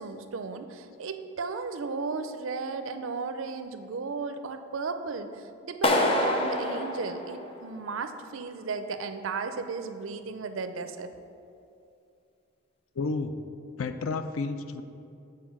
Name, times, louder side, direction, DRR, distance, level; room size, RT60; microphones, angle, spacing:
voice 1, 0.0-11.1, right 4 dB, 75° right, 8 dB, 0.5 m, -35 dB
Clapping, 5.8-7.9, left 1 dB, 25° left, 0.6 m, -27 dB
voice 2, 13.0-13.3 13.8-14.8, left 4 dB, 85° left, 9 dB, 0.5 m, -31 dB
7.5 x 4.5 x 5.9 m, 2.6 s
head